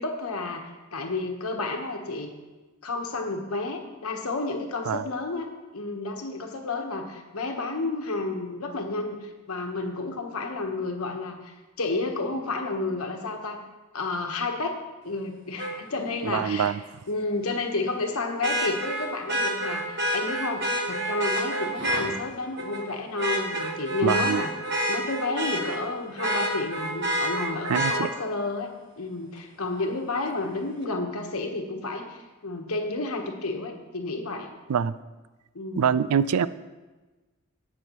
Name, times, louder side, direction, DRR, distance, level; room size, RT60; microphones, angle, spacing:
voice 1, 0.0-2.3 2.8-5.5 5.7-13.6 13.9-14.8 15.0-16.7 17.1-24.5 24.9-34.5 35.5-35.9, left 3 dB, 75° left, 4 dB, 1.2 m, -31 dB
Vehicle horn car horn honking, 15.6-15.7 18.4-22.1 22.6-22.8 23.2-25.8 26.2-28.0 29.8-29.9, right 1 dB, 50° right, 1.4 m, -28 dB
voice 2, 16.2-16.8 24.0-24.4 27.6-28.1 34.7-34.9 35.8-36.5, right 7 dB, 85° right, 16 dB, 0.4 m, -24 dB
18.5 x 6.2 x 3.0 m, 1.2 s
head